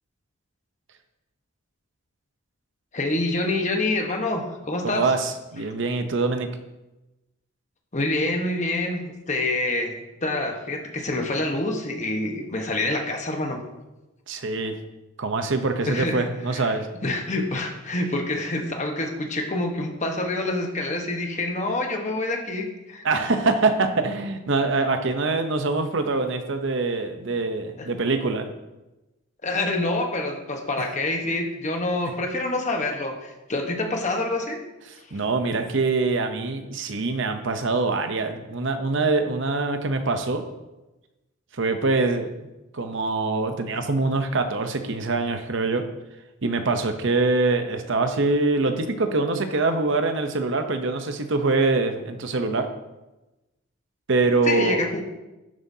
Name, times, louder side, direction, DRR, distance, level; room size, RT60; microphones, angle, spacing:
voice 1, 2.9-5.1 7.9-13.6 15.9-16.8 17.0-23.1 27.8-27.9 29.4-34.6 54.4-55.0, left 2 dB, 35° left, 3 dB, 1.2 m, -27 dB
voice 2, 4.8-6.5 14.3-14.8 15.2-16.9 23.0-28.5 35.1-40.4 41.5-42.5 42.7-45.8 46.4-52.7 54.1-54.8, right 3 dB, 60° right, 7 dB, 0.8 m, -24 dB
11.5 x 7.6 x 2.8 m, 1.0 s
head